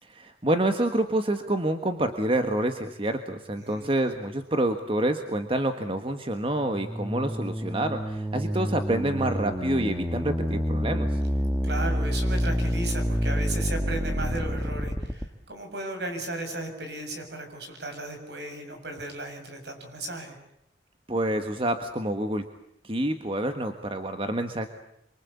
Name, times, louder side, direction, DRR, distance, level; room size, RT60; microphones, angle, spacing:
voice 1, 0.0-11.2 21.1-22.5 22.8-24.7, right 1 dB, 30° right, 7 dB, 1.5 m, -27 dB
voice 2, 3.6-4.0 11.6-20.4, right 2 dB, 65° right, 5 dB, 7.1 m, -35 dB
sound 1, 6.5-15.2, equal, 10° right, 1.6 m, -28 dB
27.5 x 24.5 x 8.4 m, 0.79 s
head